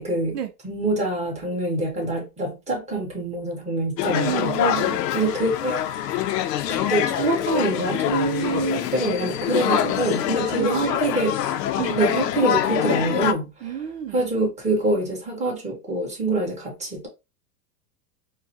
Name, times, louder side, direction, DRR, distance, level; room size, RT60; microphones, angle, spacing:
voice 1, 0.0-0.4 0.6-4.6 5.1-5.8 6.7-11.3 11.9-13.7 14.1-17.1, right 2 dB, 15° right, 1.6 m, -25 dB
sound 1, 4.0-13.3, left 11 dB, 85° left, 0.6 m, -25 dB
voice 2, 4.1-5.0 8.4-8.9 10.5-11.2 11.5-12.0 13.6-14.3, right 10 dB, 75° right, 0.7 m, -31 dB
4.6 x 2.2 x 2.9 m
hypercardioid pair, 120°, 47 cm